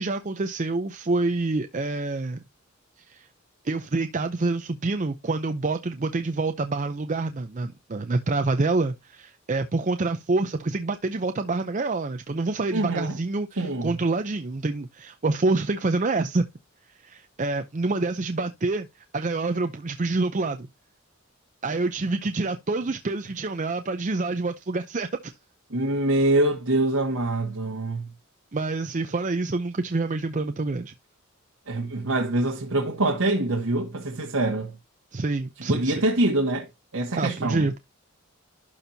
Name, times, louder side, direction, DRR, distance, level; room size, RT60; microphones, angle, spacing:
voice 1, 0.0-2.4 3.1-3.3 3.6-16.5 17.0-20.7 21.6-25.3 28.5-30.9 35.1-35.9 37.2-37.8, right 3 dB, 35° right, 0.6 m, -27 dB
voice 2, 12.7-13.2 13.6-13.9 25.7-28.1 31.7-34.7 35.7-36.7 36.9-37.7, right 2 dB, 75° right, 1.4 m, -24 dB
12.0 x 4.5 x 2.7 m
head